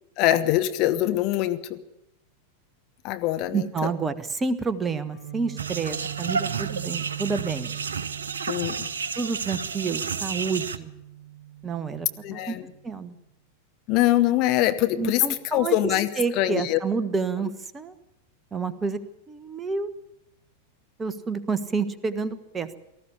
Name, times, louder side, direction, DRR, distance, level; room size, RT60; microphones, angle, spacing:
voice 1, 0.2-1.8 3.0-3.9 8.5-8.9 12.2-12.6 13.9-15.3 15.5-16.1 16.4-16.8, left 14 dB, 40° left, 10 dB, 1.2 m, -23 dB
voice 2, 3.5-7.7 9.2-10.9 11.6-12.6 12.8-13.2 15.0-15.8 16.2-17.9 18.5-19.0 19.3-19.9 21.0-22.8, right 5 dB, 15° right, 12 dB, 1.3 m, -29 dB
Guitar, 5.1-12.9, right 13 dB, 60° left, 6.4 m, -41 dB
sound 1, 5.6-10.8, right 5 dB, 70° right, 0.9 m, -31 dB
18.5 x 14.0 x 9.9 m, 0.87 s
figure-of-eight pair, 90°, 0 cm